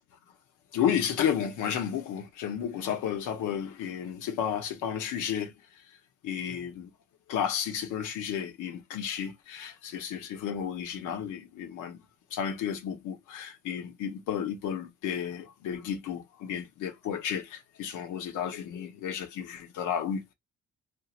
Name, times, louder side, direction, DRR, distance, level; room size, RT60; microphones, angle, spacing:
voice 1, 0.7-5.5 6.2-6.9 7.3-12.0 12.3-20.3, left 8 dB, 90° left, 0.8 m, -32 dB
2.9 x 2.4 x 2.4 m
cardioid pair, 90°, 30 cm